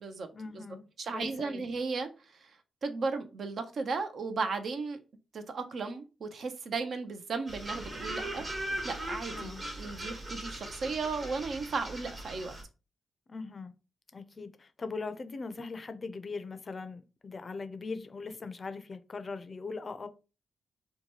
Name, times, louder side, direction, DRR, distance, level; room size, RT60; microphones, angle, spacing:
voice 1, 0.3-0.9 1.1-1.6 9.4-9.6 13.3-13.7 14.1-20.1, left 4 dB, 45° left, 0.4 m, -40 dB
voice 2, 1.0-2.1 2.4-2.5 2.8-5.0 5.3-8.5 8.8-12.5, right 4 dB, 65° right, 0.5 m, -35 dB
sound 1, 7.5-12.6, right 1 dB, 40° right, 1.1 m, -39 dB
2.8 x 2.2 x 2.8 m
supercardioid pair, 50°, 0 cm